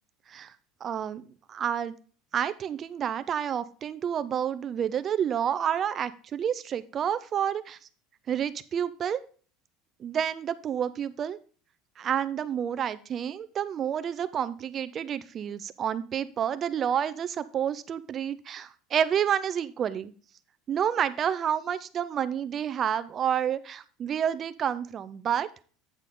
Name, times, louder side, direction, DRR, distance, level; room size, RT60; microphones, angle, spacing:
voice 1, 0.8-1.2 1.5-1.9 2.3-7.8 8.3-9.2 10.0-11.4 12.0-20.1 20.7-25.5, right 9 dB, 30° right, 14 dB, 0.4 m, -29 dB
9.0 x 6.4 x 3.7 m, 0.40 s
cardioid pair, 160°, 0 cm